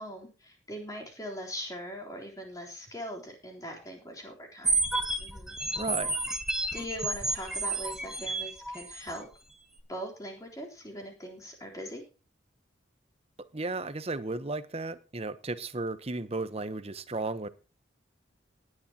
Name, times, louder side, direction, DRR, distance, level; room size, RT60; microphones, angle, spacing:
voice 1, 0.0-4.8 5.2-5.6 6.7-9.3 9.9-12.0, equal, 20° left, 0 dB, 3.6 m, -41 dB
sound 1, 4.6-9.2, right 2 dB, 5° right, 1.3 m, -31 dB
voice 2, 5.7-6.1 13.5-17.5, right 3 dB, 35° right, 13 dB, 0.9 m, -34 dB
19.0 x 9.7 x 2.9 m, 0.32 s
head